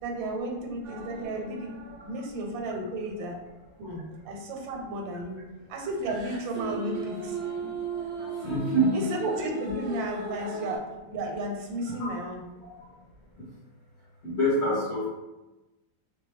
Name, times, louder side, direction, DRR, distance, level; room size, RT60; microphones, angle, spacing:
voice 1, 0.0-1.7 2.0-3.4 3.8-5.4 5.7-7.4 8.9-12.4, right 1 dB, 85° right, 2 dB, 1.4 m, -33 dB
sound 1, 0.8-2.6 3.0-3.2 6.0-10.8, right 2 dB, 60° right, 0.8 m, -37 dB
voice 2, 8.4-9.1 11.8-12.1 13.4-13.5 14.2-15.1, right 1 dB, 55° left, -8 dB, 0.7 m, -26 dB
3.0 x 2.2 x 3.2 m, 1.1 s
omnidirectional pair, 2.0 m